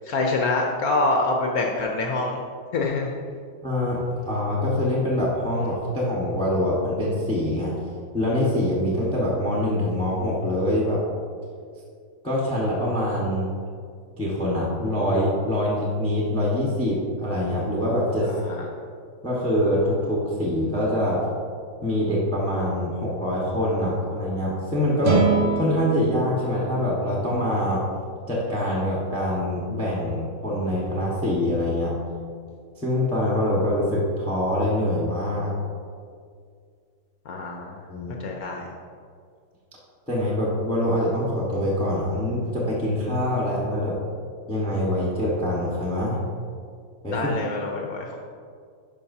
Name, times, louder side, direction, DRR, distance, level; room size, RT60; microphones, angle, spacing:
voice 1, 0.1-2.4 2.7-3.1 18.2-18.6 37.3-37.8 38.2-38.6 47.1-48.2, left 3 dB, 75° left, 0 dB, 0.8 m, -25 dB
voice 2, 3.6-7.7 8.1-11.0 12.2-13.5 14.2-18.3 19.2-21.2 21.8-25.2 25.6-27.9 28.3-31.9 32.8-35.5 37.9-38.2 40.1-44.0 44.5-46.2 47.0-47.3, left 1 dB, 5° left, -5 dB, 0.8 m, -24 dB
sound 1, 25.0-28.3, right 5 dB, 90° right, 1.8 m, -27 dB
11.0 x 5.3 x 2.7 m, 2.2 s
omnidirectional pair, 2.2 m